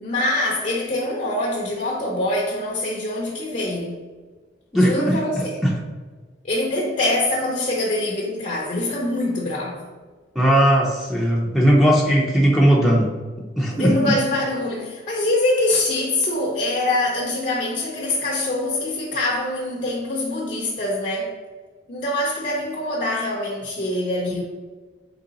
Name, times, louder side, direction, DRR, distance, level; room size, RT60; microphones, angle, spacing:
voice 1, 0.0-4.0 4.7-5.6 6.4-9.9 13.7-21.4 21.9-24.4, left 1 dB, 45° left, 0.6 m, -24 dB
voice 2, 4.7-5.2 5.6-5.7 10.4-13.1 13.6-14.1, equal, ahead, 0.5 m, -17 dB
4.0 x 3.0 x 3.9 m
head